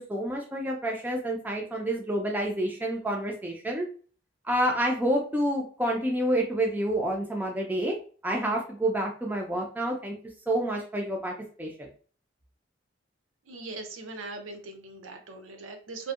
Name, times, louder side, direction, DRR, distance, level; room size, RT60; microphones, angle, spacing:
voice 1, 0.0-3.8 4.5-8.0 8.2-10.1 10.5-11.9, right 1 dB, 10° right, 0 dB, 0.3 m, -28 dB
voice 2, 13.5-16.1, right 3 dB, 90° right, 4 dB, 0.5 m, -40 dB
2.6 x 2.1 x 2.3 m, 0.41 s
head